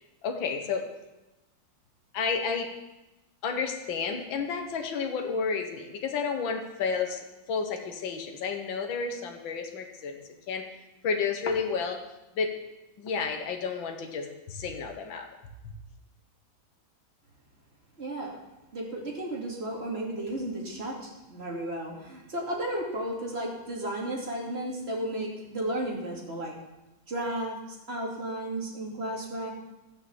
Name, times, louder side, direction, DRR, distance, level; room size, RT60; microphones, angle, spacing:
voice 1, 0.2-0.9 2.1-2.7 3.4-10.2 10.5-10.7 11.0-12.0 12.4-12.5 13.0-15.3, left 5 dB, 70° left, 4 dB, 2.0 m, -31 dB
voice 2, 18.0-18.4 18.7-26.6 27.1-29.5, right 1 dB, 30° right, -2 dB, 3.0 m, -34 dB
14.5 x 6.7 x 7.3 m, 1.0 s
omnidirectional pair, 2.2 m